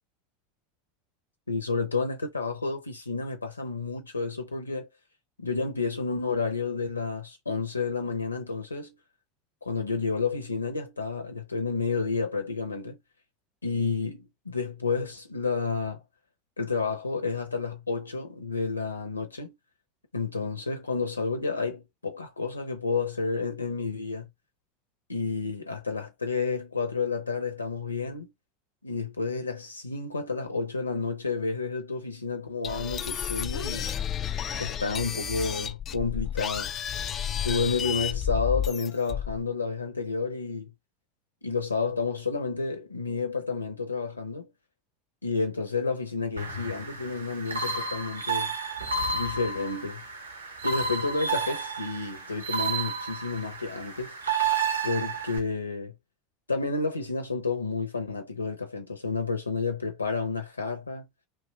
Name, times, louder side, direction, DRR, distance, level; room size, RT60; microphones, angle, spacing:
voice 1, 1.5-4.9 5.4-8.9 9.6-13.0 13.6-16.0 16.6-19.5 20.1-24.3 25.1-28.3 28.8-33.9 34.5-36.7 37.4-40.7 41.4-44.5 45.2-48.5 49.1-50.0 50.6-54.2 54.8-55.9 56.5-61.1, left 4 dB, 85° left, 0.7 m, -30 dB
sound 1, 32.6-39.4, left 9 dB, 35° left, 0.3 m, -32 dB
sound 2, 46.4-55.4, right 4 dB, 85° right, 0.7 m, -31 dB
2.9 x 2.4 x 2.8 m
figure-of-eight pair, 80°, 0 cm